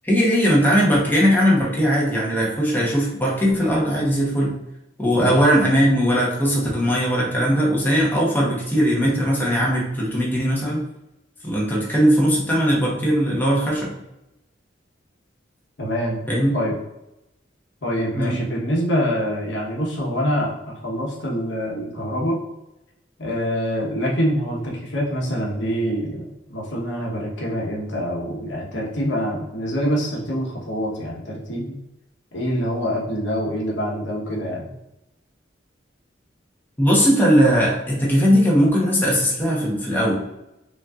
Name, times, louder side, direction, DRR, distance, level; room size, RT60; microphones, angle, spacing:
voice 1, 0.0-4.5 5.0-10.8 11.4-14.0 16.3-16.6 18.1-18.4 36.8-40.1, equal, 10° left, -4 dB, 0.9 m, -19 dB
voice 2, 15.8-16.2 16.5-16.7 17.8-22.4 23.2-31.8 32.3-34.7, equal, 70° left, -3 dB, 1.1 m, -25 dB
5.1 x 2.6 x 2.4 m, 0.90 s
head